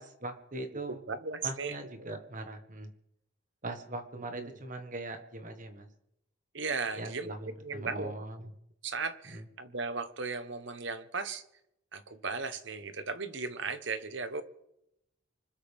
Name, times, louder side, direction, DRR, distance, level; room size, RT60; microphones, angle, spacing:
voice 1, 0.0-1.0 1.4-2.9 3.6-5.9 7.0-8.5 9.3-9.4, right 2 dB, 35° right, 6 dB, 1.6 m, -41 dB
voice 2, 1.1-2.1 4.4-4.5 6.5-8.1 8.8-11.4 11.9-14.4, right 4 dB, 55° right, 11 dB, 1.1 m, -36 dB
25.5 x 13.0 x 3.6 m, 0.81 s
head